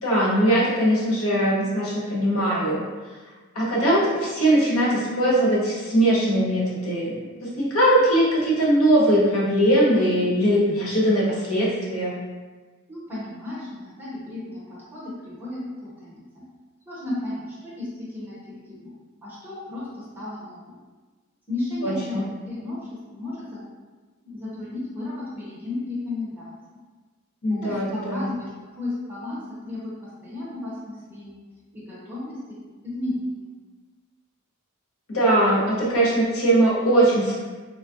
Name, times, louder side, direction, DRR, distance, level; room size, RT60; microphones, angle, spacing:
voice 1, 0.0-2.8 3.5-12.2 21.8-22.3 27.4-28.3 35.1-37.4, right 1 dB, 70° left, -6 dB, 0.8 m, -21 dB
voice 2, 12.9-16.4 16.9-18.4 18.7-18.9 19.2-20.8 21.5-22.2 22.5-22.8 23.1-23.6 24.2-26.5 27.5-28.5 28.8-29.4 29.6-31.4 31.7-32.6 32.8-33.5, left 2 dB, 10° right, -9 dB, 1.0 m, -34 dB
3.7 x 2.3 x 2.4 m, 1.3 s
head